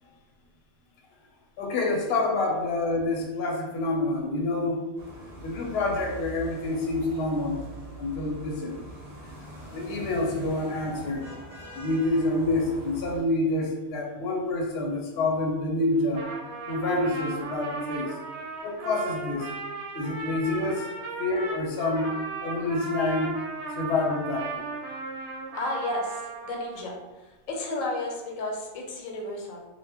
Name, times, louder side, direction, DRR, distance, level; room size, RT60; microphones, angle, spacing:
voice 1, 1.6-4.8 5.4-7.6 8.0-8.8 9.7-11.2 11.7-16.2 16.7-18.1 18.6-19.5 19.9-20.9 21.2-22.1 22.4-23.3 23.8-24.5, left 2 dB, 60° left, -1 dB, 0.8 m, -27 dB
sound 1, 5.0-13.2, right 1 dB, 40° right, 0.6 m, -43 dB
Trumpet, 16.0-26.8, right 3 dB, 70° right, 0.8 m, -36 dB
voice 2, 25.5-29.6, left 2 dB, 90° left, 0 dB, 1.0 m, -33 dB
2.2 x 2.0 x 3.4 m, 1.2 s
omnidirectional pair, 1.3 m